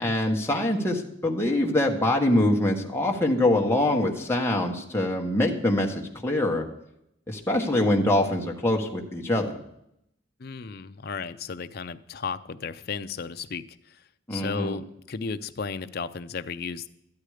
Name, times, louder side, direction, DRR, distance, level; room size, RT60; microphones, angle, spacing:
voice 1, 0.0-6.6 7.3-9.6 14.3-14.8, left 1 dB, 10° left, 0 dB, 1.3 m, -24 dB
voice 2, 10.4-14.0 14.3-16.9, left 5 dB, 50° left, 10 dB, 0.5 m, -34 dB
13.0 x 10.5 x 4.9 m, 0.78 s
head